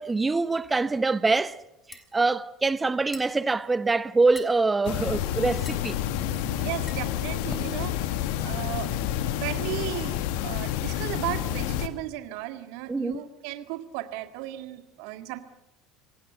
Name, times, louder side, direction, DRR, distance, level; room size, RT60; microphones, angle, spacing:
voice 1, 0.0-1.6 1.9-6.0 12.9-13.2, right 3 dB, 15° right, 0.9 m, -24 dB
sound 1, 1.5-7.9, left 3 dB, 20° left, 3.8 m, -45 dB
sound 2, 4.8-11.9, left 11 dB, 65° left, 1.6 m, -29 dB
voice 2, 6.4-8.9 9.3-15.4, right 15 dB, 60° right, 1.9 m, -35 dB
27.5 x 17.0 x 8.0 m
figure-of-eight pair, 65°, 0 cm